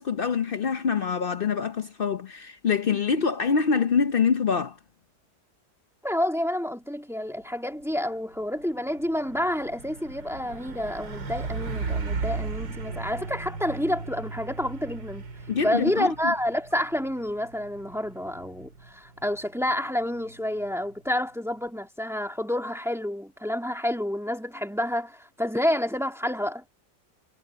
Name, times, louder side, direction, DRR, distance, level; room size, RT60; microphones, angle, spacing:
voice 1, 0.0-4.8 15.5-16.3, left 6 dB, 75° left, 0.5 m, -25 dB
voice 2, 6.0-15.2 15.6-26.6, left 1 dB, ahead, 1.6 m, -29 dB
Truck, 7.8-8.1 8.4-21.0, right 4 dB, 75° right, 3.1 m, -37 dB
omnidirectional pair, 2.0 m